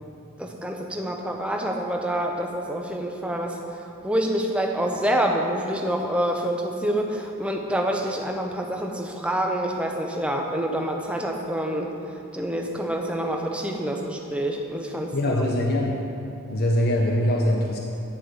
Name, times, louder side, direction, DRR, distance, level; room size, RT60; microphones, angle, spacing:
voice 1, 0.4-3.6 4.0-11.9 12.3-15.3, right 1 dB, 5° right, 1 dB, 0.6 m, -27 dB
voice 2, 15.1-16.0 16.5-17.8, left 1 dB, 45° left, 0 dB, 0.6 m, -22 dB
9.9 x 4.9 x 6.0 m, 2.6 s
head